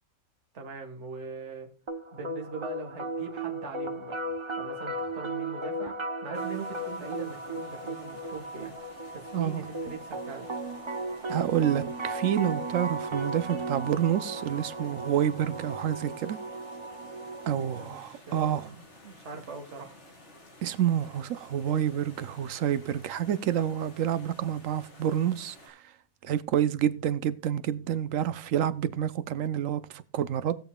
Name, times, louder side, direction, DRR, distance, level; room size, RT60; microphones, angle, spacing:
voice 1, 0.5-1.7 2.1-8.8 9.1-10.5 17.7-20.0, right 4 dB, 55° right, 1.7 m, -42 dB
sound 1, 1.9-17.9, right 2 dB, 30° right, 0.5 m, -36 dB
sound 2, 6.3-25.7, left 2 dB, 55° left, 2.9 m, -53 dB
voice 2, 9.3-9.6 11.2-16.4 17.5-18.7 20.6-25.8 26.2-30.6, right 10 dB, 70° right, 0.9 m, -28 dB
19.0 x 6.9 x 2.2 m
omnidirectional pair, 1.5 m